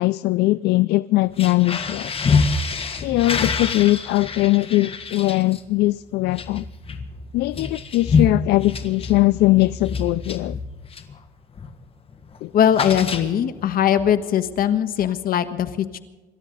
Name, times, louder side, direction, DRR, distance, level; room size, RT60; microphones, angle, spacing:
voice 1, 0.0-2.1 3.0-6.7 7.3-10.6 12.4-12.5, left 18 dB, 75° left, 0.4 m, -20 dB
sound 1, 1.2-11.2 11.5-11.8 12.1-13.7, left 5 dB, 35° left, 1.7 m, -26 dB
voice 2, 12.5-16.0, left 9 dB, 60° left, 1.3 m, -20 dB
27.0 x 12.5 x 4.0 m
cardioid pair, 110°, 17 cm